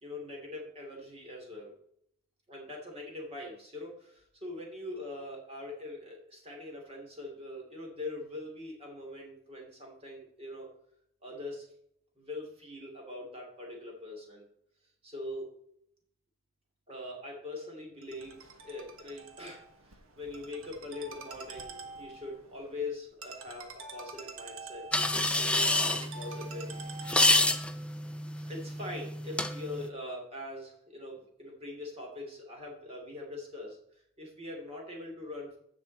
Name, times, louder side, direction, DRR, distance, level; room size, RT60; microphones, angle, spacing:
voice 1, 0.0-1.7 2.5-10.7 11.2-11.7 12.2-14.4 15.0-15.5 16.9-18.4 18.6-26.8 27.3-27.5 28.5-33.8 34.2-35.6, left 2 dB, 30° right, 0 dB, 3.0 m, -42 dB
Ringtone, 18.0-27.6, right 4 dB, 75° right, 1.4 m, -47 dB
sound 1, 24.9-29.9, left 2 dB, 5° left, 0.5 m, -29 dB
15.5 x 5.9 x 4.2 m, 0.72 s
head